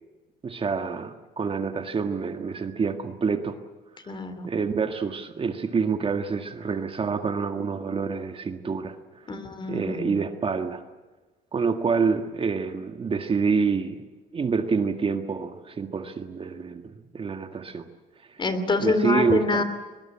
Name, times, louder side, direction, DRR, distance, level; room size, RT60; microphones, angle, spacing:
voice 1, 0.4-3.6 4.4-9.3 9.7-10.8 11.5-14.0 14.3-17.9 18.3-18.4 18.8-19.6, right 5 dB, 35° right, 7 dB, 1.8 m, -27 dB
voice 2, 4.1-4.5 9.3-10.2 18.4-19.6, left 3 dB, 30° left, 11 dB, 3.1 m, -26 dB
22.0 x 21.5 x 8.7 m, 1.2 s
cardioid pair, 110°, 17 cm